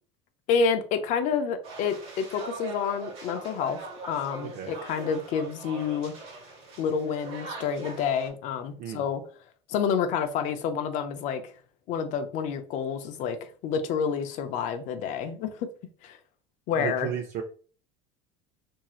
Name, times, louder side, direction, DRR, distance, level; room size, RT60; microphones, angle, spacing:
voice 1, 0.5-3.8 4.1-6.1 6.8-9.2 9.7-11.5 11.9-13.4 13.6-15.7 16.0-16.2 16.7-17.1, left 6 dB, 50° left, 0.5 m, -28 dB
sound 1, 1.6-8.3, right 3 dB, 40° right, 1.1 m, -42 dB
voice 2, 4.4-4.7 8.8-9.0 16.7-17.4, right 9 dB, 55° right, 0.5 m, -33 dB
2.9 x 2.7 x 2.4 m
supercardioid pair, 125°, 16 cm